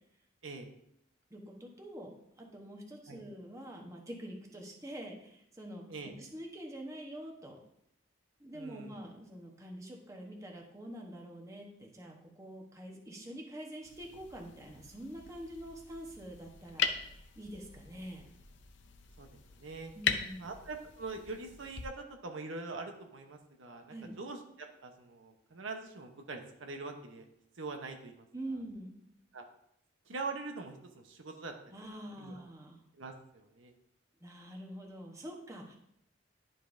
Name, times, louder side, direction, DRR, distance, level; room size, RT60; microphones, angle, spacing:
voice 1, 1.3-5.8 6.2-7.6 8.4-18.3 19.9-20.5 23.9-24.2 28.3-29.0 31.7-32.8 34.2-35.8, right 1 dB, 15° right, 0 dB, 1.0 m, -46 dB
voice 2, 8.5-9.0 19.2-19.3 19.6-19.9 20.4-27.2 27.6-28.3 29.3-29.5 30.1-31.8 32.2-32.4 33.0-33.7, right 3 dB, 85° right, 4 dB, 0.9 m, -43 dB
sound 1, 13.8-21.8, left 6 dB, 65° left, 0.6 m, -40 dB
11.0 x 5.2 x 2.6 m, 0.76 s
head